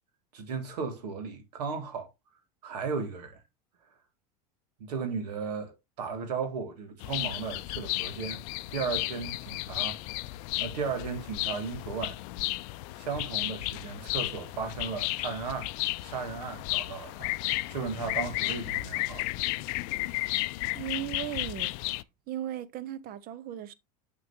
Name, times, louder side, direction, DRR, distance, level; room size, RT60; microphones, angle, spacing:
voice 1, 0.3-2.1 2.6-3.4 4.8-8.4 8.7-10.0 10.6-12.2 13.0-15.7 16.0-17.3 17.7-19.3, right 5 dB, 85° right, 2.0 m, -35 dB
sound 1, 7.0-22.0, left 20 dB, 65° left, 0.4 m, -33 dB
voice 2, 20.7-21.7 22.3-23.7, right 11 dB, 45° right, 0.8 m, -36 dB
6.8 x 6.3 x 2.8 m
hypercardioid pair, 100°, 20 cm